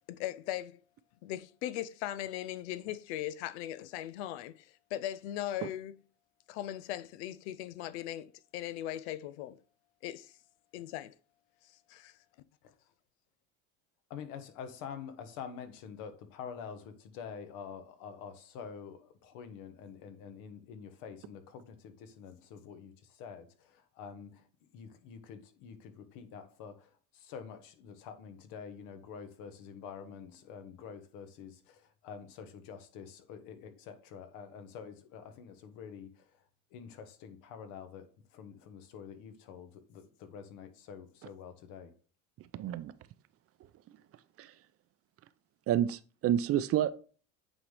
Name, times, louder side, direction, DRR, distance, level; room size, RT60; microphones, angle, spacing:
voice 1, 0.1-0.8 1.2-6.0 6.5-9.6 10.0-10.3 10.7-11.1 11.6-12.2, left 13 dB, 90° left, 0.6 m, -39 dB
voice 2, 14.1-24.5 24.7-36.3 36.7-41.9, left 7 dB, 75° left, 1.3 m, -47 dB
voice 3, 42.5-42.9 44.4-44.5 45.7-46.9, right 11 dB, 45° right, 0.6 m, -29 dB
8.8 x 4.0 x 3.3 m
supercardioid pair, 105°, 33 cm